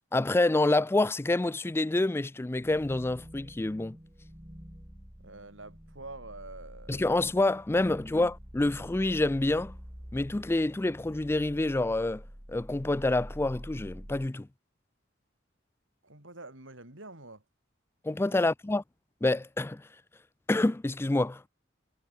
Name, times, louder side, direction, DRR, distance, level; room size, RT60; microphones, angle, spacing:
voice 1, 0.1-4.0 6.9-9.7 10.1-12.2 12.5-14.5 18.0-18.8 19.2-19.8 20.5-21.5, left 2 dB, 10° left, 0.4 m, -27 dB
sound 1, 2.6-14.3, equal, 20° right, 3.5 m, -47 dB
voice 2, 5.2-7.1 16.0-17.4 18.2-18.4, right 2 dB, 85° right, 7.7 m, -47 dB
head